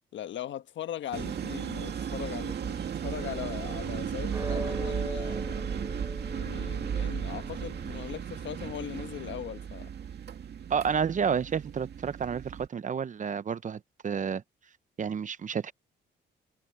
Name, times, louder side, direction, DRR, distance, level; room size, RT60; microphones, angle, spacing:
voice 1, 0.1-5.8 6.3-9.9, left 10 dB, 70° left, 1.3 m, -39 dB
sound 1, 1.1-12.7, right 8 dB, 55° right, 2.3 m, -35 dB
sound 2, 3.1-8.2, right 2 dB, 15° right, 6.1 m, -39 dB
voice 2, 10.7-14.4 15.0-15.7, right 7 dB, 40° right, 0.8 m, -30 dB
cardioid pair, 90°, 20 cm